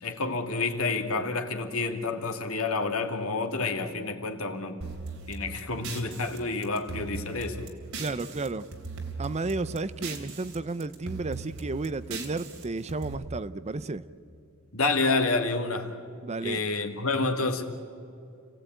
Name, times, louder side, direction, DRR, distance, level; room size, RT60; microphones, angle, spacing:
voice 1, 0.0-4.8 5.3-7.6 14.7-15.9 16.4-17.6, left 3 dB, 75° left, 2.4 m, -29 dB
sound 1, 4.8-8.5 8.7-10.6 10.8-13.1, right 4 dB, 85° right, 3.6 m, -39 dB
voice 2, 8.0-8.7 9.2-14.0 16.2-16.6, right 3 dB, 30° right, 0.6 m, -32 dB
30.0 x 17.5 x 9.2 m
head